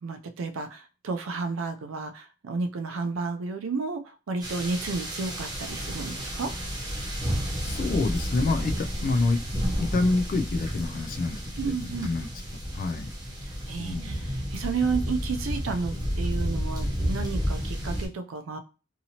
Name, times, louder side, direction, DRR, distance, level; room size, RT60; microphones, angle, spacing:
voice 1, 0.0-6.5 11.6-12.1 13.4-18.6, right 4 dB, 90° right, 9 dB, 0.4 m, -32 dB
sound 1, 4.4-18.1, equal, 20° right, 0.8 m, -31 dB
voice 2, 7.5-9.4 9.8-12.3 12.7-13.1 13.8-14.3, left 3 dB, 45° left, 7 dB, 0.3 m, -28 dB
2.8 x 2.8 x 2.8 m, 0.33 s
head